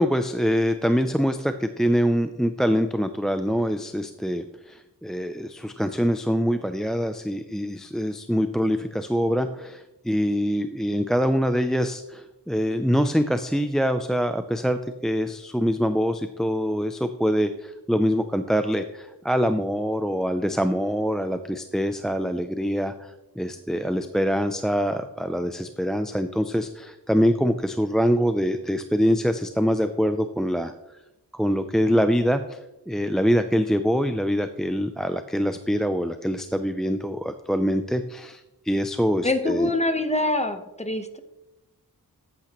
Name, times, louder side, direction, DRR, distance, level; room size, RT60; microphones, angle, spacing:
voice 1, 0.0-30.7 31.3-32.6 32.9-39.7, equal, ahead, 8 dB, 0.4 m, -24 dB
voice 2, 39.2-41.2, left 2 dB, 15° left, 8 dB, 1.0 m, -25 dB
13.0 x 8.6 x 3.0 m, 0.94 s
wide cardioid pair, 85°, 39 cm